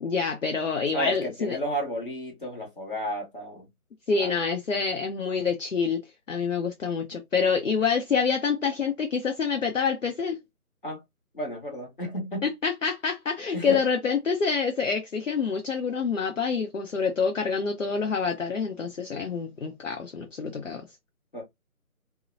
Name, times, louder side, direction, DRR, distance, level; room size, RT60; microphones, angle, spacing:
voice 1, 0.0-1.6 4.1-6.0 6.3-10.4 12.4-20.8, left 5 dB, 60° left, 0.5 m, -27 dB
voice 2, 0.9-3.7 4.2-4.4 10.8-11.0 11.3-12.5 13.5-13.8 21.3-21.4, equal, 35° left, 1.0 m, -32 dB
2.7 x 2.0 x 2.4 m
figure-of-eight pair, 160°, 45 cm